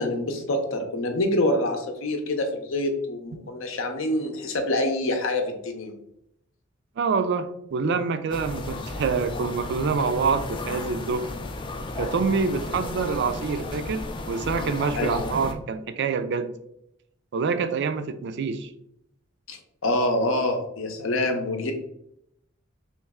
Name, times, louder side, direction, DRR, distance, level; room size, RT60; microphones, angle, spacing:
voice 1, 0.0-5.9 15.0-15.3 19.5-21.7, left 1 dB, 70° left, 5 dB, 0.7 m, -26 dB
voice 2, 7.0-11.3 12.0-16.5 17.3-18.7, right 5 dB, 60° right, 10 dB, 0.4 m, -26 dB
sound 1, 8.3-15.5, left 2 dB, 25° left, 0.3 m, -34 dB
3.2 x 3.1 x 3.5 m, 0.77 s
head